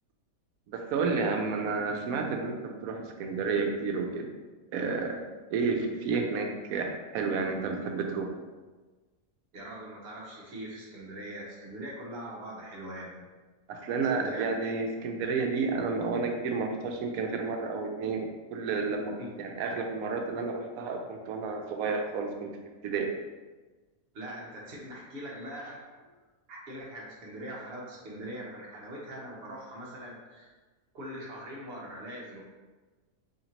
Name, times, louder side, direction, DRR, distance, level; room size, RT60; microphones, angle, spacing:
voice 1, 0.7-4.3 4.7-5.2 5.5-8.3 13.7-22.5 22.8-23.1, right 4 dB, 80° right, 3 dB, 1.0 m, -31 dB
voice 2, 9.5-13.2 14.1-14.4 19.2-19.3 24.1-26.1 26.5-30.5 30.9-32.4, right 1 dB, 50° right, -4 dB, 1.1 m, -42 dB
4.3 x 2.8 x 2.8 m, 1.3 s
omnidirectional pair, 1.5 m